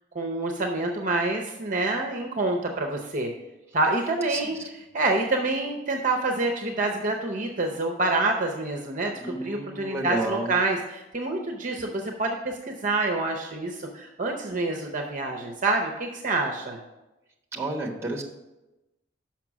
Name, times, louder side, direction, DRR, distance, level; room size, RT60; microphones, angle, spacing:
voice 1, 0.1-3.3 3.7-4.6 4.9-16.8, right 2 dB, 40° right, 3 dB, 0.7 m, -27 dB
voice 2, 4.3-4.7 9.2-10.5 17.5-18.2, right 2 dB, 15° right, 0 dB, 1.1 m, -31 dB
5.9 x 5.8 x 6.1 m, 0.99 s
head